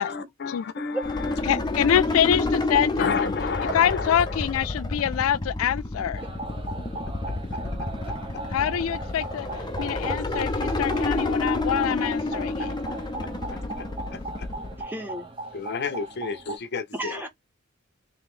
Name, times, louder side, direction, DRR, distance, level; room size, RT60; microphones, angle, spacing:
voice 1, 0.0-1.4 3.0-4.5 7.5-8.4 12.6-13.0 13.5-14.5 15.5-17.3, left 5 dB, 55° left, 0.7 m, -32 dB
sound 1, 1.0-14.8, left 2 dB, 20° left, 0.7 m, -29 dB
voice 2, 1.5-3.1 3.7-6.2 8.5-9.5 9.8-12.7, left 9 dB, 80° left, 0.3 m, -25 dB
sound 2, 6.1-16.6, right 2 dB, 25° right, 1.1 m, -38 dB
voice 3, 14.8-15.3 16.9-17.3, right 1 dB, 10° right, 1.4 m, -33 dB
3.3 x 3.0 x 3.7 m
head